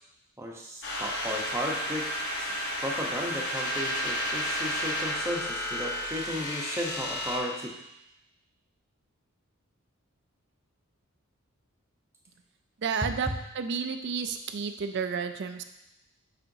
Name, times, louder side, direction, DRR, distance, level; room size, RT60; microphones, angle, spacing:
voice 1, 0.4-2.0 2.4-2.5 2.8-7.7 13.0-13.1, equal, 10° right, -1 dB, 0.8 m, -34 dB
sound 1, 0.8-7.4, equal, 55° left, 1.1 m, -32 dB
voice 2, 12.8-13.3 13.5-15.6, right 6 dB, 50° right, 8 dB, 0.4 m, -31 dB
7.4 x 4.9 x 2.7 m, 0.88 s
head